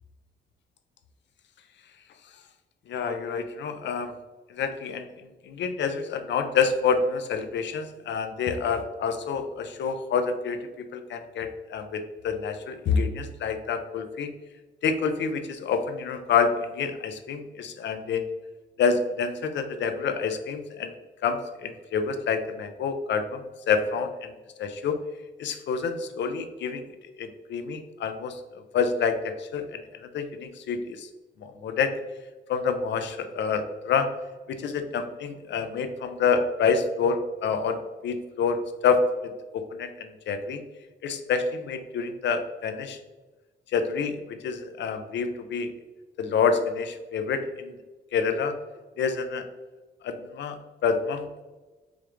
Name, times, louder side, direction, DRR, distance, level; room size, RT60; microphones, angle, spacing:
voice 1, 2.9-4.1 4.5-5.1 5.5-14.3 14.8-18.3 18.8-20.9 21.2-24.3 24.6-25.0 25.4-26.8 27.2-28.4 28.7-31.1 31.4-31.9 32.5-34.1 34.5-40.6 41.0-43.0 43.7-45.7 46.2-47.7 48.1-48.6 49.0-49.4 50.0-51.3, left 5 dB, 65° left, 8 dB, 0.5 m, -27 dB
4.9 x 2.4 x 3.1 m, 1.2 s
cardioid pair, 115°, 20 cm